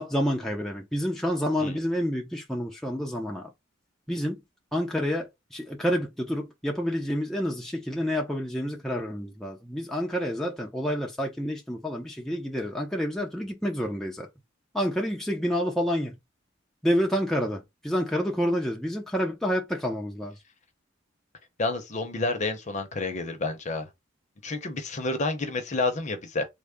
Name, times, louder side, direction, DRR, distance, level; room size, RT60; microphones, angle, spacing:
voice 1, 0.0-3.5 4.1-4.4 4.7-14.3 14.7-16.2 16.8-20.3, equal, ahead, 0.5 m, -28 dB
voice 2, 21.6-23.9 24.4-26.4, left 3 dB, 40° left, 0.7 m, -29 dB
3.7 x 2.0 x 3.4 m
head